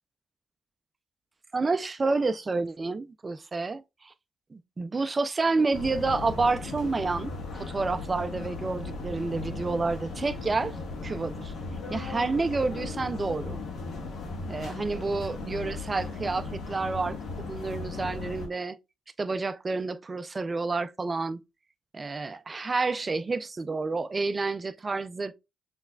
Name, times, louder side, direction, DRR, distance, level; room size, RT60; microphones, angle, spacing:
voice 1, 1.5-4.1 4.5-10.8 11.0-11.5 11.9-13.6 14.5-18.8 19.2-21.4 21.9-25.3, right 3 dB, 30° right, 0.4 m, -29 dB
sound 1, 5.7-18.5, left 3 dB, 65° left, 1.6 m, -37 dB
7.0 x 3.2 x 2.3 m
cardioid pair, 90°, 0 cm